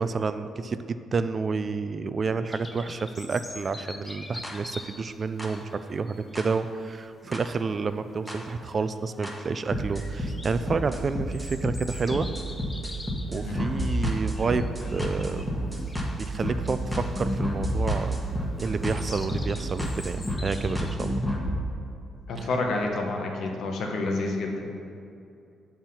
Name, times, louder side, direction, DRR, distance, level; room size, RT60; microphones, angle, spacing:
voice 1, 0.0-12.3 13.3-18.2 18.6-21.2 22.4-22.5, right 4 dB, 40° right, 11 dB, 0.3 m, -30 dB
sound 1, 2.5-21.0, left 2 dB, 20° left, 0.6 m, -45 dB
sound 2, 4.4-4.5 5.4-5.5 6.4-6.5 7.3-7.4 8.3-8.4 9.2-9.3 9.7-21.5, equal, 5° left, 1.2 m, -30 dB
voice 2, 22.3-24.6, left 2 dB, 70° left, 2 dB, 1.0 m, -29 dB
7.5 x 4.5 x 5.5 m, 2.6 s
cardioid pair, 90°, 0 cm